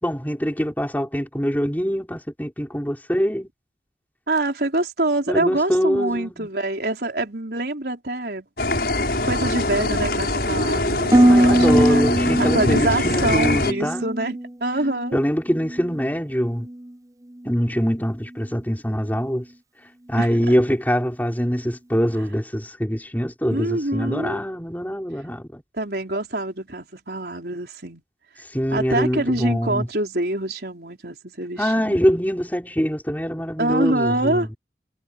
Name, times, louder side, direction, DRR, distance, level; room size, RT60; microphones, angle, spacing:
voice 1, 0.0-3.5 5.3-6.5 11.3-14.0 15.1-16.7 17.4-19.5 20.1-25.6 28.4-29.9 31.6-34.5, equal, 10° left, 5.7 m, -24 dB
voice 2, 4.3-8.5 9.2-12.0 12.4-15.2 20.2-20.3 23.5-24.4 25.7-28.0 28.7-32.0 33.6-34.5, right 2 dB, 65° right, 4.4 m, -25 dB
sound 1, 8.6-13.7, left 2 dB, 60° left, 7.8 m, -23 dB
Harp, 11.1-15.2 15.5-16.1 16.6-16.9, right 1 dB, 20° right, 0.8 m, -21 dB
head